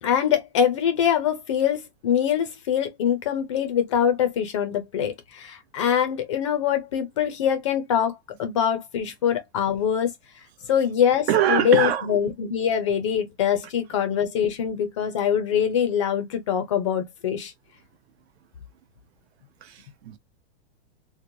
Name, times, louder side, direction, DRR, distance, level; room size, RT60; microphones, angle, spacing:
voice 1, 0.0-10.1 10.7-17.5, left 8 dB, 30° left, 0.3 m, -24 dB
voice 2, 11.3-12.1 13.9-14.0 19.6-20.2, right 10 dB, 70° right, 0.7 m, -24 dB
3.0 x 2.1 x 2.5 m
supercardioid pair, 165°, 33 cm